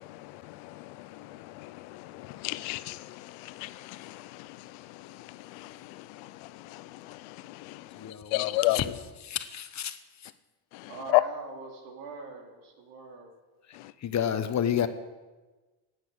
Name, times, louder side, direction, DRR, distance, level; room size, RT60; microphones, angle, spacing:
voice 1, 0.0-8.0 8.3-8.8 10.7-11.2, left 19 dB, 85° left, 0.8 m, -33 dB
voice 2, 8.0-8.9 9.2-10.0 14.0-14.9, left 9 dB, 35° left, 1.1 m, -30 dB
voice 3, 10.9-13.3, right 4 dB, 80° right, 3.1 m, -42 dB
10.5 x 9.5 x 8.2 m
cardioid pair, 110°, 46 cm